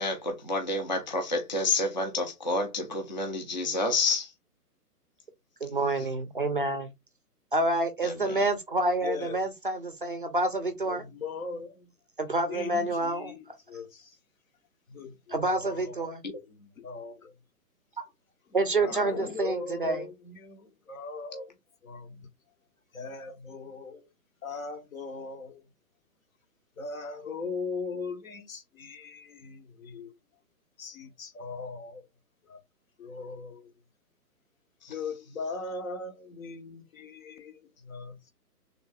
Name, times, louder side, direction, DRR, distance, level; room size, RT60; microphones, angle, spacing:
voice 1, 0.0-4.3 8.0-8.5 34.8-34.9, left 3 dB, 30° left, 0.5 m, -29 dB
voice 2, 5.6-6.9 7.5-11.0 12.2-13.3 15.3-16.2 18.0-18.1 18.5-20.1, right 2 dB, 35° right, 0.4 m, -28 dB
voice 3, 9.0-9.4 10.9-11.9 12.5-14.2 14.9-16.1 16.4-17.3 18.6-21.5 21.8-22.3 22.9-24.1 24.4-25.6 26.8-30.1 30.8-32.0 32.5-32.6 33.0-33.7 34.9-38.2, left 4 dB, 55° left, 1.0 m, -39 dB
3.5 x 2.2 x 3.8 m
hypercardioid pair, 165°, 48 cm